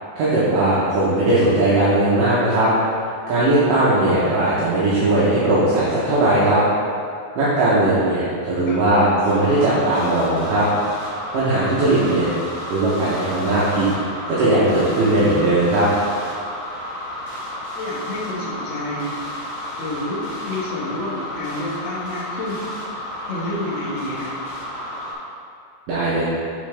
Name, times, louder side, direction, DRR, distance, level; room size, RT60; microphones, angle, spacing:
voice 1, 0.2-2.7 3.3-6.6 7.4-10.6 11.3-12.3 12.7-13.9 14.3-15.9 25.9-26.2, right 1 dB, 75° right, -10 dB, 1.9 m, -18 dB
sound 1, 9.3-25.1, left 1 dB, 60° left, 3.3 m, -32 dB
voice 2, 17.7-19.2 19.8-22.6 23.2-24.3, left 1 dB, 90° left, -10 dB, 1.1 m, -29 dB
8.8 x 4.6 x 3.3 m, 2.4 s
omnidirectional pair, 5.1 m